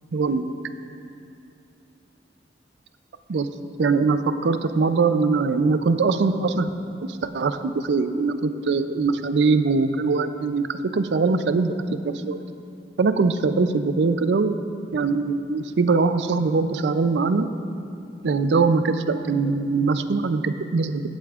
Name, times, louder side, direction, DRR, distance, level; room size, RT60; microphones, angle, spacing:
voice 1, 0.1-0.4 3.3-3.5 3.8-6.7 7.2-11.7 12.0-12.4 13.0-14.5 14.9-17.5 18.2-21.1, right 4 dB, 80° right, 11 dB, 0.4 m, -22 dB
16.5 x 8.3 x 2.4 m, 2.5 s
head